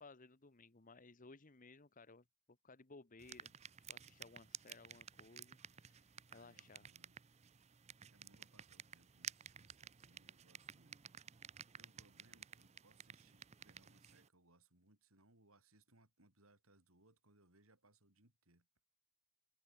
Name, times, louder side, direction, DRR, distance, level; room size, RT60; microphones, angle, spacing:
voice 1, 0.0-2.2 2.6-3.5 3.9-6.9, left 3 dB, 35° left, 1.1 m, -60 dB
sound 1, 3.2-14.3, right 8 dB, 30° right, 0.6 m, -55 dB
voice 2, 6.3-7.2 8.1-18.7, right 2 dB, 70° right, 5.9 m, -71 dB
head